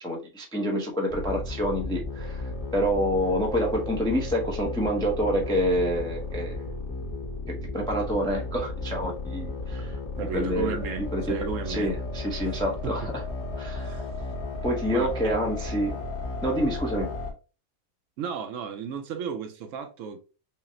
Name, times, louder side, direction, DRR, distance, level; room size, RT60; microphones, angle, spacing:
voice 1, 0.0-2.4 2.7-6.6 7.7-10.0 10.3-11.4 11.7-13.1 13.6-14.0 14.6-16.0 16.4-17.1, equal, 5° left, 0.4 m, -27 dB
sound 1, 1.1-17.3, left 2 dB, 55° left, 1.2 m, -34 dB
voice 2, 10.2-11.9 12.8-12.9 13.8-14.0 14.9-15.4 18.2-20.2, right 6 dB, 70° right, 0.9 m, -34 dB
5.6 x 2.0 x 2.6 m
omnidirectional pair, 1.5 m